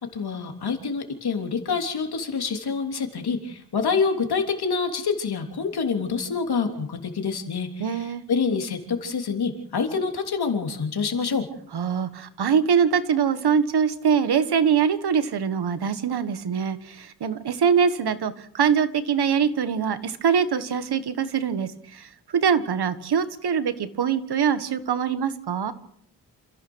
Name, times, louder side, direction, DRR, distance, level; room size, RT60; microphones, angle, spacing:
voice 1, 0.1-11.5, left 5 dB, 80° left, 4 dB, 3.3 m, -27 dB
voice 2, 7.8-8.2 11.7-25.7, right 7 dB, 85° right, 12 dB, 1.5 m, -23 dB
28.0 x 15.5 x 6.3 m, 0.68 s
wide cardioid pair, 125°, 38 cm